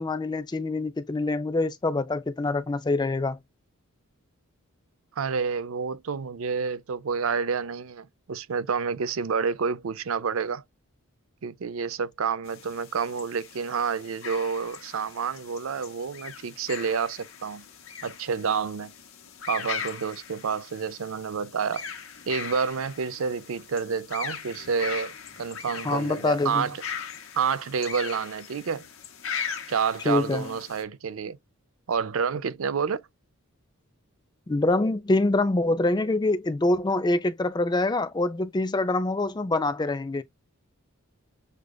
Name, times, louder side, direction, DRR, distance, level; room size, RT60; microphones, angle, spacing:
voice 1, 0.0-3.4 25.8-26.7 30.1-30.5 34.5-40.2, left 2 dB, 20° left, 0.4 m, -25 dB
voice 2, 5.2-10.6 11.4-17.7 18.0-18.9 19.5-21.9 22.3-25.1 25.4-26.8 27.3-28.8 29.7-31.4 31.9-33.0, right 6 dB, 70° right, 0.5 m, -29 dB
sound 1, 12.4-30.8, left 7 dB, 65° left, 1.2 m, -39 dB
6.5 x 2.4 x 2.2 m
head